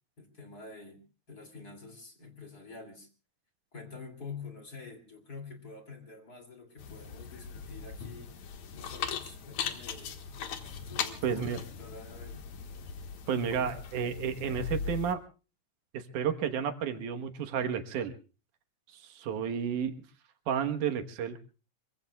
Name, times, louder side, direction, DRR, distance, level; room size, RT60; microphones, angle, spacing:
voice 1, 0.2-1.0 1.3-3.1 3.7-8.3 8.7-10.1 10.9-12.5 13.3-13.7, left 4 dB, 30° left, 5 dB, 2.9 m, -47 dB
sound 1, 6.8-15.1, left 7 dB, 70° left, 2.8 m, -39 dB
voice 2, 11.2-11.6 13.3-15.2 15.9-18.1 18.9-19.9 20.5-21.4, right 7 dB, 90° right, 8 dB, 2.8 m, -31 dB
26.0 x 23.0 x 2.3 m, 0.34 s
omnidirectional pair, 3.4 m